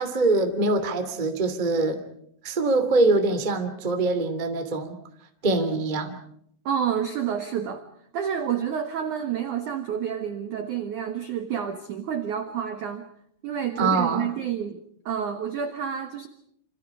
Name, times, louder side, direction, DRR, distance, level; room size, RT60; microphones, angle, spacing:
voice 1, 0.0-2.0 2.4-5.0 5.4-6.2 13.8-14.3, right 2 dB, 30° right, 7 dB, 0.8 m, -23 dB
voice 2, 6.7-7.9 8.1-13.1 13.4-16.3, right 8 dB, 85° right, 7 dB, 1.7 m, -29 dB
28.5 x 27.0 x 4.9 m, 0.69 s
omnidirectional pair, 5.9 m